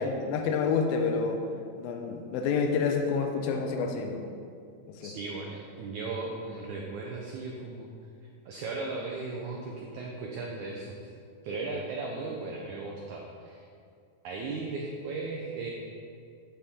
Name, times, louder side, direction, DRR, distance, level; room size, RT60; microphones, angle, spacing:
voice 1, 0.0-1.5 1.8-4.3 4.9-5.1, left 5 dB, 80° left, 4 dB, 2.3 m, -28 dB
voice 2, 5.0-7.9 8.4-10.9 11.4-13.6 14.2-15.7, right 3 dB, 85° right, -1 dB, 1.7 m, -36 dB
9.3 x 7.0 x 3.6 m, 2.3 s
omnidirectional pair, 4.4 m